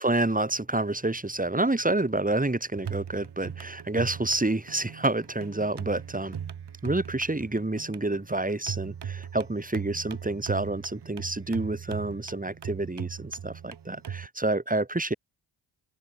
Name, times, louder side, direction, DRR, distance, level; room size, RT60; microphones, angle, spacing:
voice 1, 0.0-6.4 6.8-15.1, right 2 dB, 15° right, 5.4 m, -28 dB
sound 1, 2.8-14.3, right 8 dB, 55° right, 2.6 m, -39 dB
supercardioid pair, 60°, 48 cm